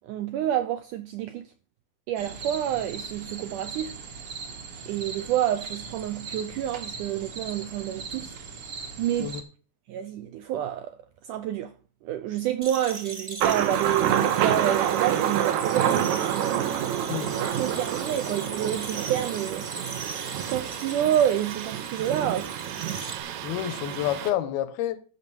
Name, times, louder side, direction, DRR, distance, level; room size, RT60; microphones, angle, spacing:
voice 1, 0.0-1.5 2.1-3.9 4.9-8.3 9.0-9.4 9.9-11.0 11.2-11.7 12.0-16.7 17.2-19.7 20.5-22.8, right 11 dB, 85° right, 1.8 m, -28 dB
sound 1, 2.2-9.4, right 5 dB, 50° right, 1.7 m, -39 dB
sound 2, 12.6-23.2, right 2 dB, 25° right, 1.3 m, -39 dB
Thunder, 13.4-24.3, right 10 dB, 70° right, 2.0 m, -28 dB
voice 2, 23.4-25.0, left 12 dB, 80° left, 2.7 m, -29 dB
13.5 x 6.9 x 4.6 m
omnidirectional pair, 4.5 m